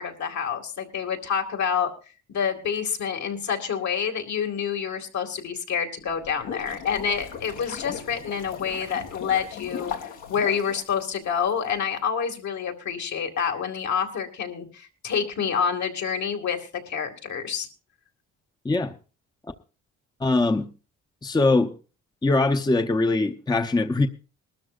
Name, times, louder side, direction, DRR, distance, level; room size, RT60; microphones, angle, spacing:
voice 1, 0.0-1.9 2.3-17.7, left 7 dB, 65° left, 3 dB, 2.5 m, -28 dB
sound 1, 6.1-11.5, left 7 dB, 85° left, 2.4 m, -38 dB
voice 2, 20.2-20.7 21.2-21.7 22.2-24.1, left 2 dB, 15° left, 5 dB, 0.9 m, -22 dB
21.0 x 13.0 x 2.5 m, 0.33 s
cardioid pair, 90°, 30 cm